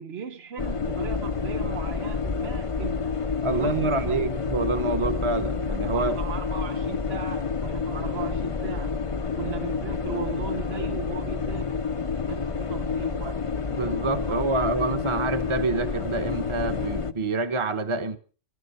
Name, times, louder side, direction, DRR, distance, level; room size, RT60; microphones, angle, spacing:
voice 1, 0.0-4.2 5.9-9.0 9.4-11.9 12.3-13.4 14.1-14.7, right 7 dB, 70° right, 1.2 m, -38 dB
sound 1, 0.6-17.1, left 5 dB, 35° left, 0.7 m, -29 dB
voice 2, 3.4-6.1 13.7-18.2, right 3 dB, 30° right, 1.1 m, -27 dB
15.5 x 13.5 x 5.6 m
omnidirectional pair, 1.1 m